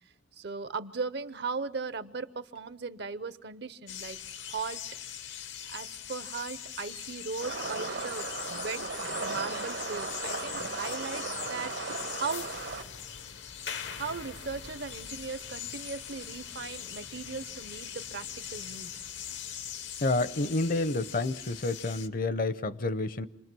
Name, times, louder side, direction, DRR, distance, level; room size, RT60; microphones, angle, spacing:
voice 1, 0.4-4.8 5.7-8.9 9.2-11.2 11.5-12.5 13.9-18.9, right 4 dB, 60° right, 14 dB, 0.8 m, -38 dB
sound 1, 3.9-22.1, left 9 dB, 75° left, 0.9 m, -41 dB
sound 2, 7.4-12.8, right 4 dB, 80° right, 1.4 m, -36 dB
voice 2, 20.0-23.3, left 2 dB, 50° left, 14 dB, 0.7 m, -29 dB
28.0 x 21.0 x 6.2 m, 0.91 s
head